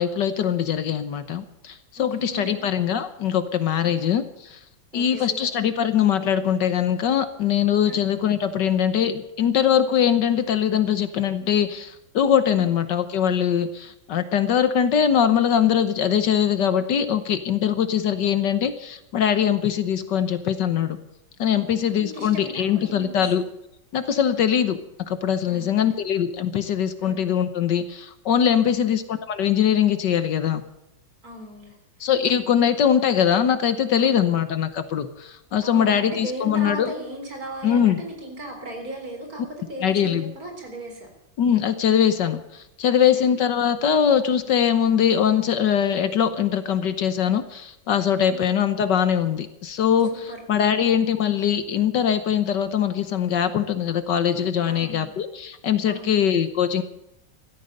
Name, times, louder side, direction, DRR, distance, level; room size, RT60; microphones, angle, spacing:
voice 1, 0.0-4.6 4.9-21.0 21.4-23.4 23.9-24.8 25.1-30.6 32.0-36.9 37.6-38.0 39.8-40.3 41.4-56.8, left 8 dB, 65° left, 11 dB, 1.6 m, -22 dB
voice 2, 2.0-2.7 3.8-4.0 4.9-5.4 7.8-8.0 12.5-12.7 19.4-19.5 21.5-23.3 24.3-24.5 25.5-25.9 27.0-27.2 28.6-28.9 31.2-31.7 32.0-32.1 34.0-34.4 35.6-41.1 43.1-43.3 48.3-48.5 50.1-50.4 54.7-55.1 55.9-56.2, right 1 dB, 45° right, 3 dB, 4.3 m, -37 dB
16.0 x 13.5 x 6.7 m, 0.83 s
omnidirectional pair, 2.1 m